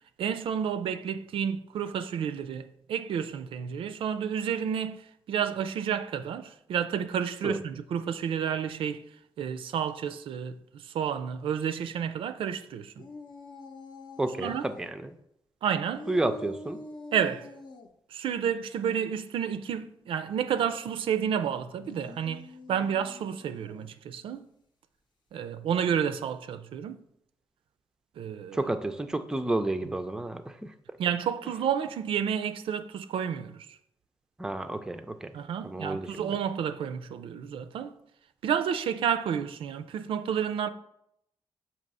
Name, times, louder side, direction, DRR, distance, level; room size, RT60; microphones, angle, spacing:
voice 1, 0.2-9.1 9.4-13.0 14.4-14.7 15.6-16.1 17.1-17.5 18.1-24.5 25.3-27.0 28.2-28.6 31.0-33.8 35.3-37.9 38.4-40.7, right 8 dB, 80° right, 0.4 m, -30 dB
sound 1, 13.0-14.9 15.9-17.9 21.7-23.9, left 3 dB, 55° left, 0.7 m, -45 dB
voice 2, 14.2-15.1 16.1-16.8 28.5-30.7 34.4-35.3 35.6-36.4, right 2 dB, 5° right, 0.4 m, -31 dB
6.4 x 2.8 x 5.4 m
wide cardioid pair, 135°, 9 cm